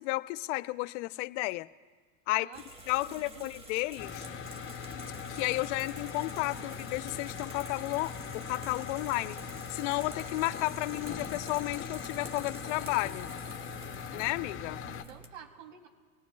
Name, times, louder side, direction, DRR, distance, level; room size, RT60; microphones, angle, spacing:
voice 1, 0.0-1.7 2.3-2.5 2.9-4.2 5.3-8.1 8.5-9.4 9.7-13.3 14.1-14.8, left 21 dB, 60° left, 15 dB, 0.6 m, -32 dB
voice 2, 2.3-2.6 3.0-3.5 4.1-4.4 6.3-6.7 11.5-11.6 14.8-15.9, right 7 dB, 65° right, 3 dB, 2.9 m, -51 dB
sound 1, 2.5-15.3, right 2 dB, 15° right, 1.5 m, -48 dB
sound 2, 4.0-15.0, left 7 dB, 30° left, 1.1 m, -41 dB
26.0 x 18.0 x 2.3 m, 1.5 s
hypercardioid pair, 110°, 41 cm